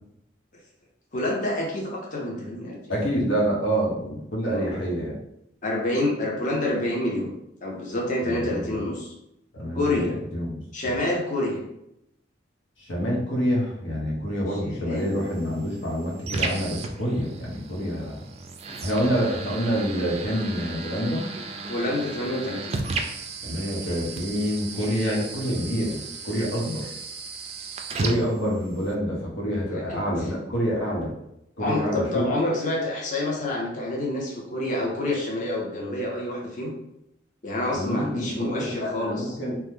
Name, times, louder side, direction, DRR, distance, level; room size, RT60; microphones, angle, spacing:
voice 1, 1.1-2.8 4.5-4.8 5.6-7.3 7.6-9.1 9.7-10.2 10.7-11.6 14.6-15.1 16.5-16.6 21.7-22.8 29.5-30.0 31.6-36.7 37.4-39.4, left 1 dB, 45° left, -3 dB, 0.6 m, -28 dB
voice 2, 2.9-5.2 8.2-8.8 9.5-10.0 10.3-10.9 12.8-18.2 18.8-21.2 23.4-26.0 26.2-26.9 28.0-31.1 31.6-32.3 37.7-39.6, equal, 85° left, -3 dB, 1.0 m, -27 dB
sound 1, 15.0-29.0, right 3 dB, 35° right, 0.3 m, -35 dB
2.9 x 2.1 x 3.5 m, 0.81 s
head